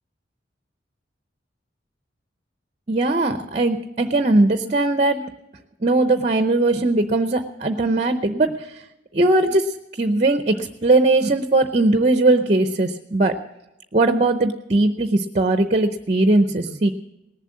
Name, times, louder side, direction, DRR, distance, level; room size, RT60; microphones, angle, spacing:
voice 1, 2.9-5.3 5.8-8.8 9.1-13.4 13.9-16.9, right 2 dB, 35° right, 9 dB, 0.6 m, -19 dB
18.5 x 7.4 x 8.5 m, 0.92 s
head